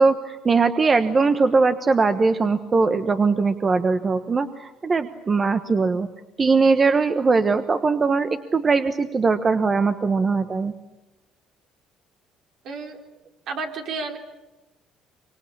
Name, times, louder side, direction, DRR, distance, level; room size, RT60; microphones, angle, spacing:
voice 1, 0.0-6.1 6.4-10.7, right 4 dB, 30° right, 9 dB, 1.2 m, -20 dB
voice 2, 12.6-13.0 13.5-14.2, right 4 dB, 65° right, 3 dB, 3.8 m, -31 dB
25.0 x 25.0 x 8.6 m, 1.0 s
cardioid pair, 105°, 0 cm